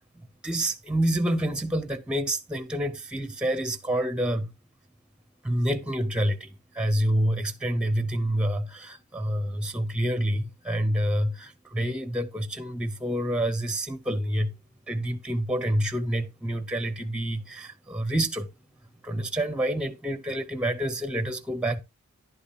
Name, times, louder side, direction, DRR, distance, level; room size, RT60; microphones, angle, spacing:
voice 1, 0.2-4.5 5.4-6.5 6.7-14.5 14.9-18.5 19.0-21.8, right 1 dB, 5° right, 0.5 m, -28 dB
11.0 x 8.5 x 2.2 m
head